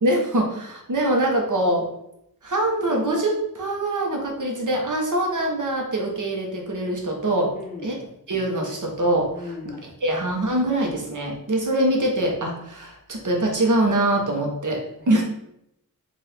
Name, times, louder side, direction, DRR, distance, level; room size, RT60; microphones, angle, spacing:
voice 1, 0.0-1.9 2.4-7.5 7.8-7.9 8.3-9.3 10.0-15.2, right 1 dB, 55° right, 0 dB, 1.0 m, -23 dB
voice 2, 7.5-8.0 9.3-10.0 15.0-15.2, left 3 dB, 25° left, 2 dB, 0.5 m, -37 dB
4.2 x 2.6 x 3.4 m, 0.79 s
wide cardioid pair, 75°, 37 cm